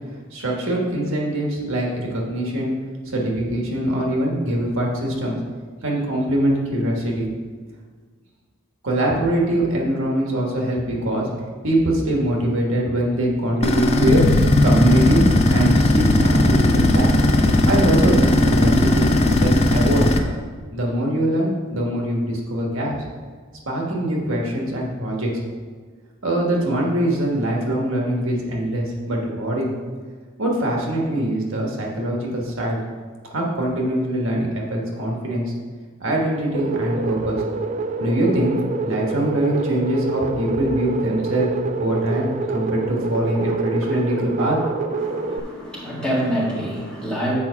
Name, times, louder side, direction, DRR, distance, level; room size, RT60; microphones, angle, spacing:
voice 1, 0.3-2.8 3.1-5.4 5.8-7.3 8.8-11.3 11.6-14.2 14.6-17.1 17.6-20.1 20.7-23.0 23.6-25.3 26.2-29.7 30.4-32.8 33.3-35.5 36.0-37.4 38.0-38.6 38.8-41.5 41.8-44.6, right 1 dB, 70° right, -1 dB, 1.5 m, -23 dB
sound 1, 13.6-20.2, left 1 dB, 30° left, 0.6 m, -17 dB
sound 2, 36.5-45.4, right 3 dB, 35° right, 0.3 m, -26 dB
voice 2, 45.0-47.3, equal, 5° left, -6 dB, 1.6 m, -26 dB
7.5 x 4.6 x 5.7 m, 1.5 s
head